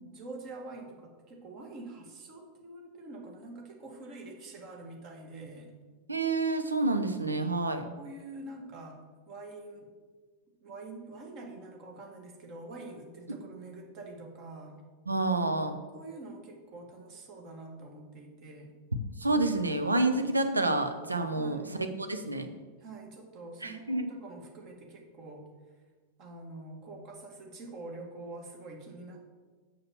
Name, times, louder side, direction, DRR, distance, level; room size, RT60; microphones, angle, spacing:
voice 1, 0.1-5.7 8.0-9.0 9.3-9.9 10.6-14.8 15.9-18.7 21.4-21.8 22.8-25.5 26.2-29.3, right 2 dB, 40° right, 1 dB, 1.9 m, -45 dB
voice 2, 6.1-7.8 15.1-15.8 19.2-22.5 23.6-24.1, right 2 dB, 80° right, 7 dB, 0.8 m, -28 dB
6.7 x 5.9 x 7.0 m, 1.4 s
figure-of-eight pair, 90°, 0 cm